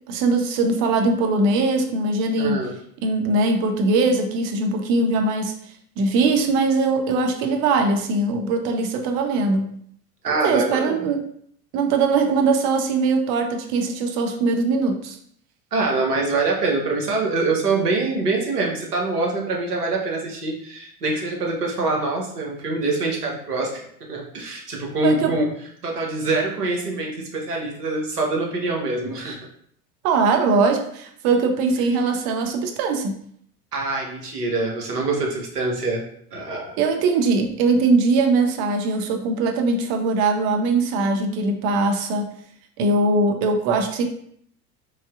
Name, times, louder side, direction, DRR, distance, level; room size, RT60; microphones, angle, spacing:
voice 1, 0.1-2.6 3.0-5.5 6.0-9.7 10.3-11.2 11.7-15.2 25.0-25.3 30.0-33.2 36.8-42.3 42.8-44.0, right 3 dB, 40° right, 5 dB, 0.5 m, -21 dB
voice 2, 2.4-2.7 10.2-11.0 15.7-25.5 25.8-29.5 33.7-36.0 36.3-36.8, right 3 dB, 75° right, 0 dB, 0.9 m, -24 dB
3.3 x 2.6 x 2.3 m, 0.65 s
figure-of-eight pair, 75°, 47 cm